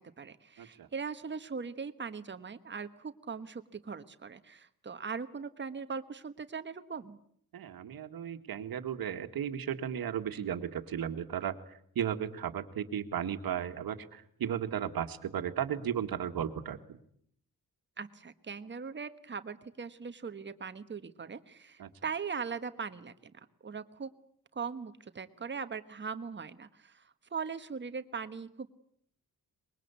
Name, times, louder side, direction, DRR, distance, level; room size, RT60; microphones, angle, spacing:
voice 1, 0.0-7.2 18.0-23.3 23.6-24.1 24.5-28.7, right 5 dB, 30° right, 11 dB, 1.3 m, -40 dB
voice 2, 0.6-0.9 7.5-17.0 21.8-21.9, right 9 dB, 85° right, 8 dB, 1.8 m, -35 dB
24.5 x 22.0 x 8.3 m, 0.67 s
wide cardioid pair, 170°, 35 cm